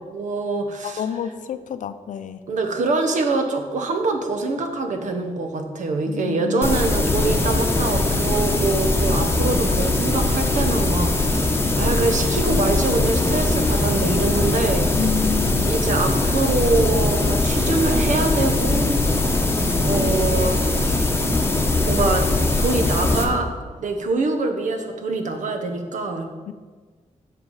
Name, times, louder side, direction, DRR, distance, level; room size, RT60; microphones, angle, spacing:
voice 1, 0.1-1.0 2.5-11.5 11.7-15.1 15.6-19.5 19.8-21.0 21.9-22.3 22.6-23.5 23.8-26.3, right 3 dB, 75° right, 5 dB, 1.2 m, -24 dB
voice 2, 0.8-2.4 6.1-6.8 14.9-15.7 26.5-26.6, left 7 dB, 85° left, 11 dB, 0.6 m, -29 dB
sound 1, 6.6-23.2, left 2 dB, 20° left, 0.9 m, -21 dB
8.0 x 6.8 x 5.6 m, 1.4 s
wide cardioid pair, 165°, 13 cm